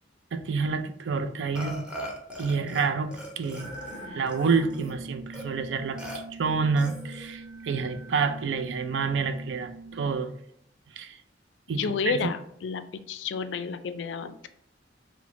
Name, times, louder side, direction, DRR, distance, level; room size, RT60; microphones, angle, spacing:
voice 1, 0.3-1.8 2.4-3.7 4.1-6.0 6.4-10.3 11.0-11.2 11.7-12.2, right 5 dB, 85° right, 9 dB, 0.4 m, -28 dB
Burping eructation, 1.5-2.9 3.1-4.9 5.3-5.4 6.0-6.2 6.8-7.3, equal, 5° right, 0.7 m, -40 dB
sound 1, 3.5-10.2, right 2 dB, 40° right, 1.3 m, -44 dB
voice 2, 11.7-14.5, left 5 dB, 80° left, 11 dB, 0.4 m, -31 dB
5.0 x 2.1 x 3.6 m, 0.72 s
head